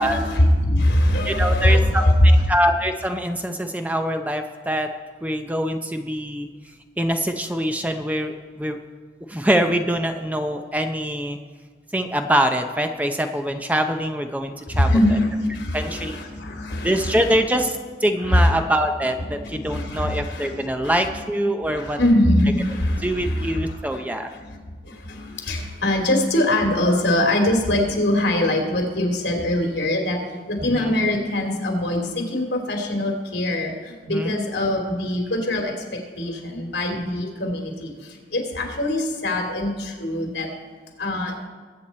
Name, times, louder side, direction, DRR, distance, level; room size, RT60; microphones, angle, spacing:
voice 1, 0.0-2.5 14.7-17.7 18.2-18.5 19.2-21.2 21.6-24.6 24.8-30.2 30.5-40.5 41.0-41.3, left 1 dB, 80° left, 2 dB, 2.7 m, -22 dB
voice 2, 1.3-4.9 5.2-6.5 7.0-8.8 9.3-11.4 11.9-14.9 15.7-16.2 16.8-22.0 23.0-24.3 30.6-30.9 34.1-34.5, equal, 10° right, 6 dB, 0.5 m, -24 dB
21.0 x 8.3 x 4.3 m, 1.5 s
head